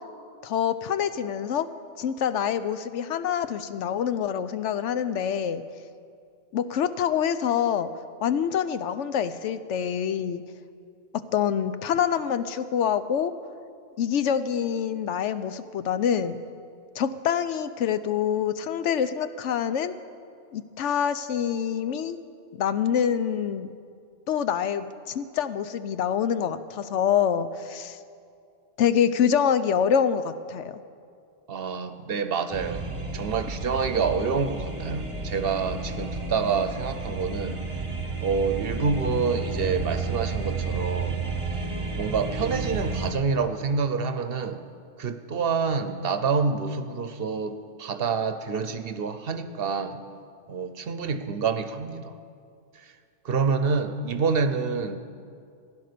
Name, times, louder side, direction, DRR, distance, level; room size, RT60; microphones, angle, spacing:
voice 1, 0.4-1.7 2.0-5.6 6.5-7.9 8.2-10.4 11.1-13.3 14.0-16.4 17.0-19.9 20.5-22.2 22.6-23.7 24.3-28.0 28.8-30.7, left 8 dB, 80° left, 12 dB, 0.9 m, -26 dB
voice 2, 31.5-32.8 33.1-37.6 38.2-41.2 41.9-44.6 45.0-50.0 50.5-52.1 52.8-52.9 53.2-55.0, right 5 dB, 55° right, 10 dB, 0.9 m, -27 dB
sound 1, 32.5-43.1, right 4 dB, 25° right, 1.1 m, -31 dB
15.5 x 10.5 x 6.7 m, 2.3 s
omnidirectional pair, 1.2 m